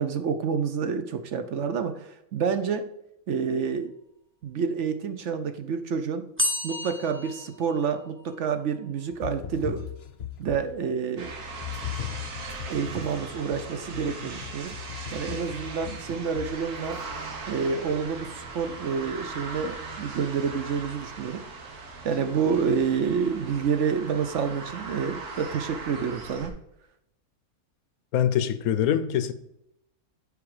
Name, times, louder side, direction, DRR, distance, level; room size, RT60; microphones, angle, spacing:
voice 1, 0.0-2.9 3.3-3.9 4.4-6.3 6.6-9.9 10.4-11.3 12.7-14.8 15.1-17.0 17.5-21.4 22.0-26.5, right 6 dB, 60° right, 0.9 m, -28 dB
sound 1, 6.4-8.3, left 1 dB, 10° right, 0.7 m, -31 dB
sound 2, 9.1-10.9 11.6-17.0, left 10 dB, 55° left, 0.8 m, -39 dB
sound 3, 11.2-26.5, right 3 dB, 85° right, 1.7 m, -39 dB
voice 2, 28.1-29.3, left 9 dB, 75° left, 1.1 m, -24 dB
7.0 x 4.9 x 4.9 m
omnidirectional pair, 1.6 m